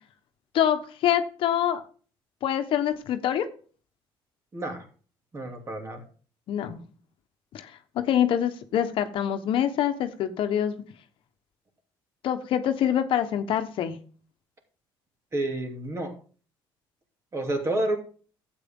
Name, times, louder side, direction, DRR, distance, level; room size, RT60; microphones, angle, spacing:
voice 1, 0.5-1.8 2.4-3.5 6.5-6.8 7.5-10.7 12.2-14.0, left 10 dB, 65° left, 8 dB, 1.2 m, -25 dB
voice 2, 4.5-4.9 5.3-6.0 15.3-16.1 17.3-18.0, right 1 dB, 30° right, 3 dB, 3.0 m, -29 dB
12.0 x 8.2 x 3.7 m, 0.40 s
cardioid pair, 110°, 10 cm